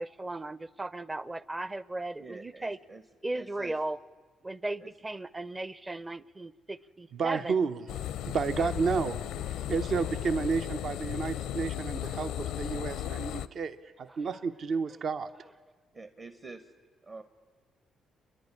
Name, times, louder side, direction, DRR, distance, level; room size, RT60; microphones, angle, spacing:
voice 1, 0.0-2.8 3.2-4.0 4.4-7.5 8.6-8.7 14.1-14.4, right 2 dB, 20° right, 19 dB, 0.6 m, -36 dB
voice 2, 2.2-3.0 3.3-3.7 4.8-4.9 10.0-10.2 15.9-16.7 17.0-17.2, right 3 dB, 40° right, 8 dB, 1.2 m, -46 dB
voice 3, 7.1-7.8 8.3-9.2 9.7-15.3, right 5 dB, 55° right, 11 dB, 0.9 m, -31 dB
sound 1, 7.9-13.5, left 11 dB, 85° left, 0.6 m, -35 dB
29.0 x 11.0 x 9.8 m, 1.4 s
cardioid pair, 90°, 0 cm